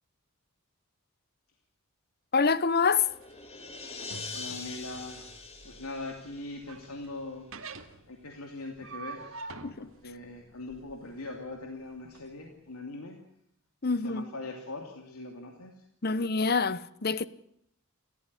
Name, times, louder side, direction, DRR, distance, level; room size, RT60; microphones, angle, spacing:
voice 1, 2.3-3.1 9.6-9.9 13.8-14.2 16.0-17.3, left 5 dB, 45° left, 0.9 m, -26 dB
sound 1, 2.7-7.1, left 4 dB, 30° left, 3.2 m, -44 dB
sound 2, 2.7-12.3, right 4 dB, 65° right, 2.1 m, -47 dB
voice 2, 4.3-5.3 5.6-7.5 8.1-9.5 9.8-13.2 14.0-15.7 16.1-16.2, left 2 dB, 85° left, 3.0 m, -41 dB
29.0 x 14.0 x 10.0 m
head